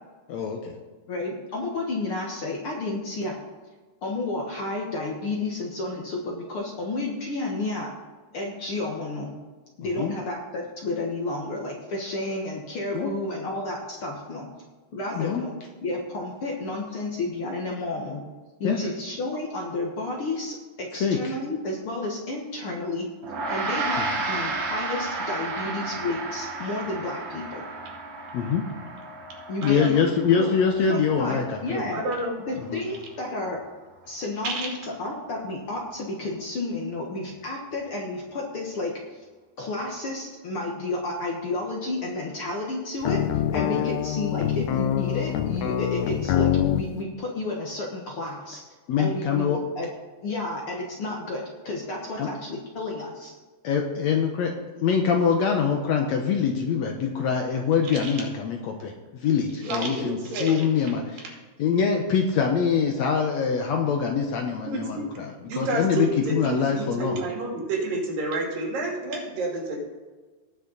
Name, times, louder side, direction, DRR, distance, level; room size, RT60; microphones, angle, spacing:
voice 1, 0.3-0.7 10.0-10.1 12.9-13.1 15.1-15.4 18.6-18.8 21.0-21.4 24.0-24.1 28.3-28.6 29.6-31.9 32.7-32.8 43.7-43.8 48.9-49.6 52.2-52.3 53.6-54.5 54.8-61.3 61.6-67.2, left 6 dB, 70° left, 3 dB, 1.8 m, -24 dB
voice 2, 1.1-3.4 4.0-7.9 8.3-9.3 9.8-14.5 14.9-15.5 15.8-18.2 18.6-23.1 23.5-27.6 29.5-29.9 30.4-30.5 30.9-32.0 32.4-33.6 34.1-34.7 35.0-39.0 39.6-43.2 43.5-48.6 49.0-49.9 50.2-53.3, left 2 dB, 55° left, -1 dB, 1.7 m, -31 dB
Gong, 23.2-32.8, right 3 dB, 50° right, 1.9 m, -33 dB
voice 3, 29.6-30.0 31.9-32.3 34.4-34.7 59.6-60.6 64.7-65.1 65.5-69.8, right 2 dB, 80° right, -1 dB, 4.1 m, -29 dB
sound 1, 43.0-46.9, left 10 dB, 85° left, 1.5 m, -25 dB
18.5 x 6.3 x 4.0 m, 1.3 s
omnidirectional pair, 3.9 m